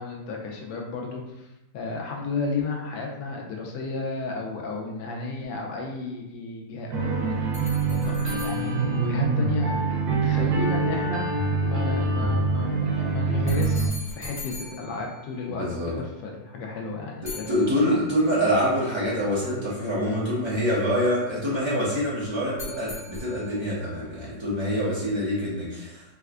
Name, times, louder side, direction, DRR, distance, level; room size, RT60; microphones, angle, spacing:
voice 1, 0.0-1.5 1.7-11.2 11.6-18.0, left 4 dB, 75° left, 0 dB, 1.2 m, -33 dB
sound 1, 6.9-13.9, right 4 dB, 85° right, 1.3 m, -25 dB
sound 2, 7.5-9.9 13.5-16.0 17.2-18.4 22.6-23.8, left 2 dB, 10° left, 0.9 m, -41 dB
voice 2, 15.6-15.9 17.2-26.0, equal, 40° right, -8 dB, 0.4 m, -25 dB
4.2 x 2.2 x 2.4 m, 0.93 s
omnidirectional pair, 2.0 m